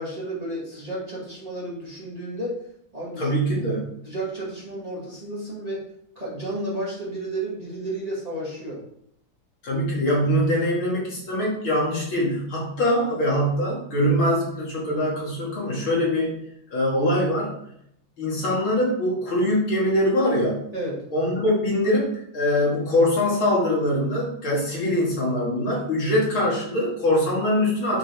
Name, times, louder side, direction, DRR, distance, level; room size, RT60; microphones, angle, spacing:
voice 1, 0.0-2.6 2.9-3.4 4.0-5.9 6.2-8.8 20.7-21.1, right 1 dB, 20° right, -6 dB, 2.0 m, -32 dB
voice 2, 3.2-3.8 9.6-16.3 16.7-17.5 18.2-20.6 21.1-28.0, left 1 dB, 75° left, -5 dB, 3.2 m, -23 dB
7.1 x 5.9 x 3.6 m, 0.71 s
omnidirectional pair, 2.2 m